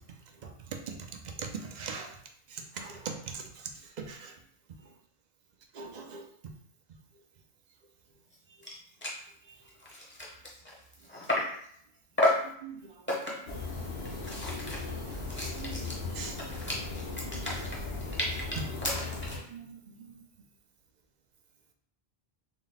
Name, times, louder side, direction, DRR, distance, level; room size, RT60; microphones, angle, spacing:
voice 1, 0.1-2.2 2.5-4.4 4.8-4.9 5.7-6.3 8.6-8.7 9.5-9.7 12.4-13.9 14.2-14.4 14.8-15.2 15.5-16.5 17.1-17.8 18.6-18.7 19.3-20.2, right 5 dB, 55° right, 3 dB, 0.5 m, -43 dB
sound 1, 8.3-8.4 8.6-8.8 9.0-9.2 9.7-11.6 12.2-12.5 13.1-13.6 14.0-19.5, left 1 dB, 15° left, 0.7 m, -33 dB
sound 2, 13.5-19.4, left 3 dB, 75° left, 1.0 m, -37 dB
3.9 x 2.1 x 3.9 m, 0.64 s
omnidirectional pair, 1.1 m